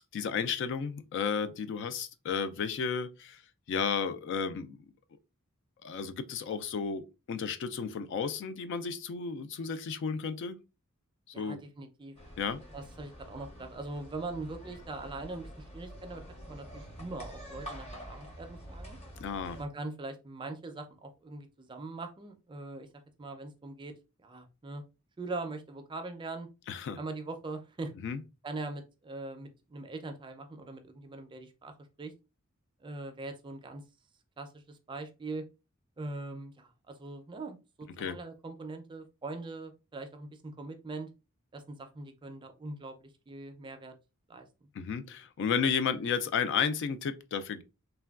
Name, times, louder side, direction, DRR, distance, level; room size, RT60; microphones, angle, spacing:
voice 1, 0.1-3.4 3.7-4.8 5.8-10.6 11.3-11.6 12.4-12.6 19.2-19.6 26.7-27.0 28.0-28.2 38.0-38.2 44.7-47.6, left 6 dB, 55° left, 0.3 m, -33 dB
voice 2, 11.3-12.2 12.7-19.0 19.6-22.9 23.2-23.9 24.2-24.8 25.2-26.5 27.0-27.9 28.4-32.1 32.8-33.8 34.4-35.4 36.0-41.1 41.5-43.9 44.3-44.7, right 2 dB, 20° right, 0.4 m, -42 dB
sound 1, 12.2-19.6, equal, 30° left, 0.7 m, -47 dB
3.3 x 2.2 x 2.3 m
head